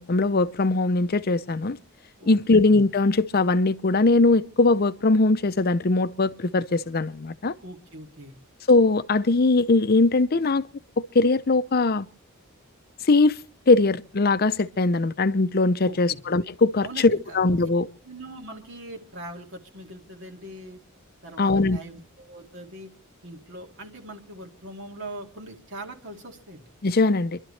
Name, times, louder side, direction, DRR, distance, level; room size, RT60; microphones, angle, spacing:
voice 1, 0.0-1.8 2.2-7.5 8.7-10.7 11.0-12.1 13.1-13.4 13.7-17.9 21.4-21.8 26.8-27.4, left 3 dB, 45° left, 0.7 m, -21 dB
voice 2, 2.2-2.6 7.6-8.3 15.9-16.2 16.8-17.7 18.0-20.8 21.2-22.9 23.2-26.7, right 1 dB, 60° right, 2.4 m, -41 dB
28.0 x 12.0 x 3.3 m
head